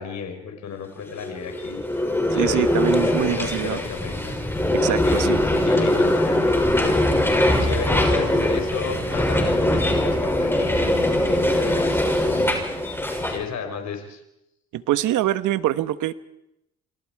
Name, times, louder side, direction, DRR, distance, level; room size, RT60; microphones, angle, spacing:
voice 1, 0.0-4.7 4.9-5.3 5.6-12.6 13.3-14.2, left 6 dB, 65° left, 4 dB, 4.3 m, -34 dB
sound 1, 1.2-13.4, left 1 dB, 5° left, 6.2 m, -21 dB
voice 2, 2.4-3.8 4.7-5.4 14.7-16.1, right 13 dB, 85° right, 13 dB, 1.2 m, -24 dB
27.5 x 24.5 x 4.8 m, 0.84 s
cardioid pair, 90°, 30 cm